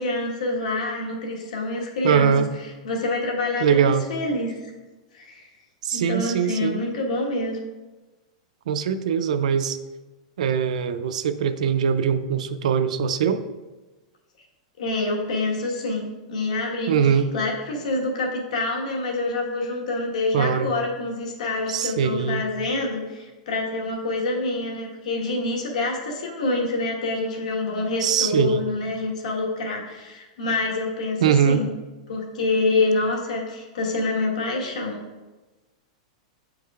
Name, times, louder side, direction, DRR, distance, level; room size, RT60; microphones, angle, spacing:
voice 1, 0.0-2.3 2.8-4.5 5.1-5.4 5.9-7.6 14.8-16.9 17.3-31.7 32.1-35.0, left 2 dB, 85° left, 0 dB, 1.3 m, -26 dB
voice 2, 2.0-2.5 3.6-4.1 5.8-6.8 8.7-9.8 10.4-13.4 16.9-17.3 20.3-20.7 21.7-22.4 28.0-28.6 31.2-31.7, right 7 dB, 80° right, 10 dB, 0.4 m, -22 dB
8.6 x 4.7 x 2.4 m, 1.2 s
supercardioid pair, 160°, 4 cm